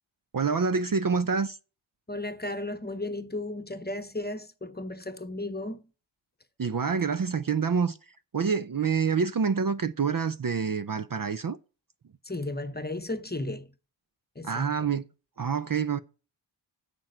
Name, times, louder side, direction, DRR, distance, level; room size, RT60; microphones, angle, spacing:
voice 1, 0.3-1.6 6.6-8.0 8.3-11.6 14.4-15.0 15.4-16.0, right 5 dB, 45° right, 0.5 m, -27 dB
voice 2, 2.1-5.8 12.2-13.7 14.3-14.7, left 2 dB, 20° left, 0.9 m, -34 dB
9.2 x 6.0 x 7.8 m
wide cardioid pair, 60°, 49 cm